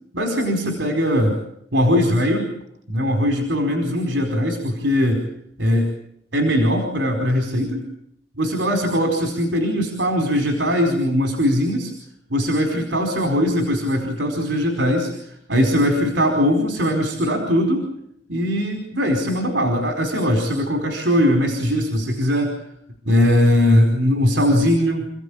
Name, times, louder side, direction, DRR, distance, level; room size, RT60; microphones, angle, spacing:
voice 1, 0.1-1.4 1.7-2.5 2.9-5.2 5.6-5.9 6.3-7.9 8.4-11.9 12.3-17.9 18.3-22.5 23.0-25.1, equal, 80° right, 4 dB, 4.8 m, -20 dB
29.0 x 16.5 x 8.8 m, 0.75 s
head